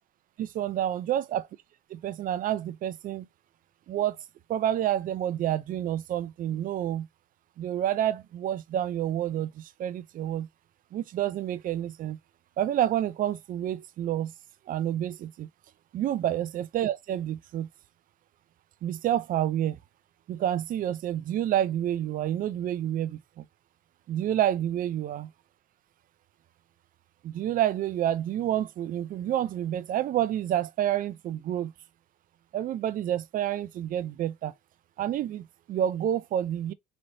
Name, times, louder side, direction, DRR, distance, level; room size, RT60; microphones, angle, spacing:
voice 1, 0.4-1.5 1.9-3.3 3.9-4.2 4.5-7.1 7.6-10.5 10.9-12.2 12.6-14.3 14.7-15.5 15.9-17.7 18.8-19.8 20.3-23.4 24.1-25.3 27.2-31.7 32.5-34.5 35.0-36.7, right 11 dB, 55° right, 0.5 m, -29 dB
4.0 x 3.2 x 2.6 m
cardioid pair, 110°, 17 cm